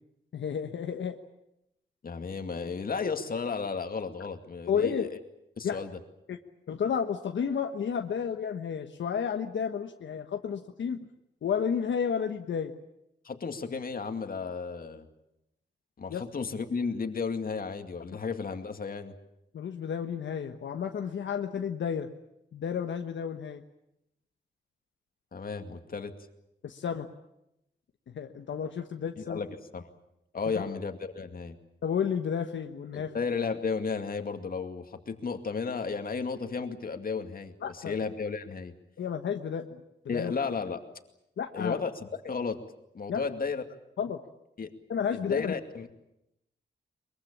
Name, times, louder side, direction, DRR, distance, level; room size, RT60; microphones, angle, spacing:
voice 1, 0.3-1.2 4.7-5.1 5.6-5.8 6.3-6.4 6.7-11.1 11.4-12.7 16.1-16.2 19.5-22.1 22.5-23.6 26.6-27.1 28.1-29.4 30.5-30.7 31.8-33.1 37.6-37.9 39.0-40.3 41.4-41.8 43.1-43.2 44.0-44.2 44.9-45.5, left 7 dB, 80° left, 5 dB, 1.3 m, -31 dB
voice 2, 2.0-5.1 5.6-6.0 13.2-15.1 16.0-19.1 25.3-26.1 29.2-29.9 30.3-31.6 32.9-38.7 40.1-40.8 41.5-42.6 42.9-43.6 44.6-44.7 45.1-45.9, left 5 dB, 50° left, 6 dB, 2.3 m, -33 dB
22.5 x 22.5 x 8.7 m, 0.84 s
wide cardioid pair, 105°, 19 cm